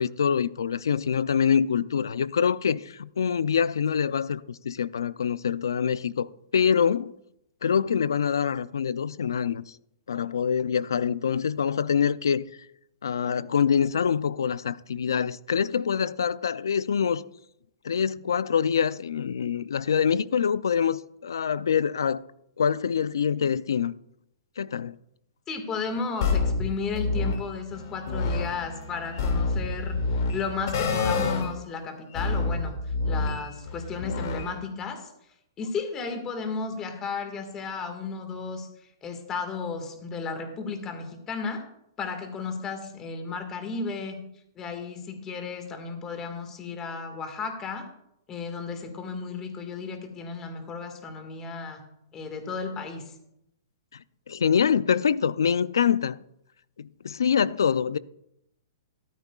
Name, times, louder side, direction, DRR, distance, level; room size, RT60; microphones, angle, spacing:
voice 1, 0.0-7.1 7.6-9.8 10.1-12.4 13.0-17.2 17.8-22.2 22.6-23.9 24.6-25.0 53.9-56.2 56.8-58.0, left 7 dB, 90° left, 0.4 m, -25 dB
voice 2, 25.5-32.7 33.1-35.1 35.6-38.7 39.0-41.6 42.0-44.2 44.6-47.8 48.3-51.8 52.1-53.1, left 5 dB, 20° left, 1.8 m, -34 dB
sound 1, 26.2-27.4 27.7-31.5 32.1-34.6, left 3 dB, 60° left, 2.3 m, -28 dB
14.5 x 13.5 x 2.4 m
hypercardioid pair, 140°, 2 cm